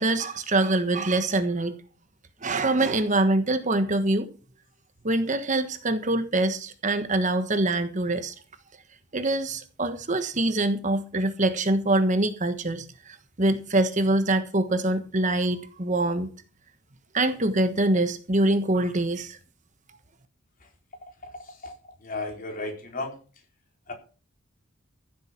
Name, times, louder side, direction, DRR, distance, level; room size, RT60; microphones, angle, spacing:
voice 1, 0.0-1.7 2.4-4.3 5.0-8.3 9.1-16.3 17.1-19.4, right 2 dB, 35° right, 1.3 m, -24 dB
voice 2, 22.0-23.1 23.9-24.0, left 2 dB, 40° left, 4.0 m, -33 dB
15.5 x 7.8 x 6.0 m
head